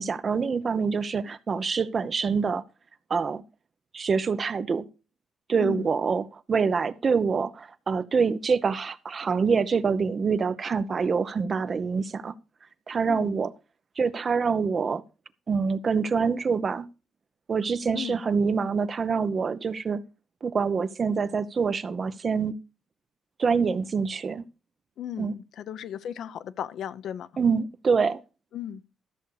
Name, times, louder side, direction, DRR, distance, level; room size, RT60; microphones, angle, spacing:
voice 1, 0.0-2.6 3.1-3.4 3.9-4.8 5.5-12.3 12.9-13.5 14.0-15.0 15.5-16.9 17.5-20.0 20.4-22.6 23.4-24.4 25.2-25.3 27.4-28.2, right 5 dB, 40° right, 0.9 m, -25 dB
voice 2, 5.6-5.9 13.0-13.4 17.9-18.2 25.0-27.3 28.5-28.8, left 9 dB, 70° left, 0.8 m, -36 dB
13.5 x 6.6 x 4.8 m
cardioid pair, 90°, 0 cm